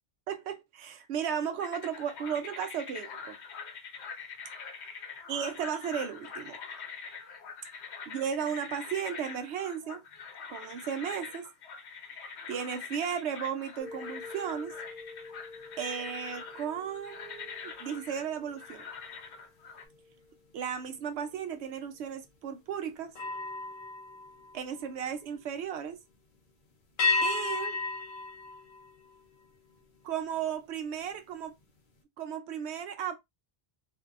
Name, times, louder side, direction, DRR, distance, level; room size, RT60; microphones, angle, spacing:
voice 1, 0.3-3.4 5.3-6.6 8.1-10.0 10.5-11.5 12.5-14.7 15.8-18.8 20.5-23.1 24.5-26.0 27.2-27.8 30.0-31.6 32.2-33.2, right 8 dB, 90° right, 0.9 m, -35 dB
sound 1, 1.6-19.8, left 5 dB, 90° left, 1.0 m, -44 dB
sound 2, 13.8-19.4 19.8-20.1 23.1-25.3 27.0-29.6, left 3 dB, 55° left, 0.7 m, -36 dB
2.6 x 2.2 x 2.3 m
omnidirectional pair, 1.1 m